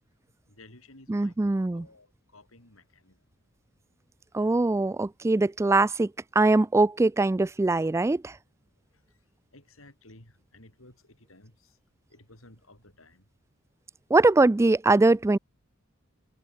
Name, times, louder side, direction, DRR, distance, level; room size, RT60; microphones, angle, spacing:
voice 1, 0.5-3.2 9.1-9.2 9.5-11.8 12.1-13.3, left 2 dB, 85° left, 6.3 m, -55 dB
voice 2, 1.1-1.9 4.3-6.1 6.4-8.4 14.1-15.4, right 2 dB, 15° right, 0.3 m, -22 dB
head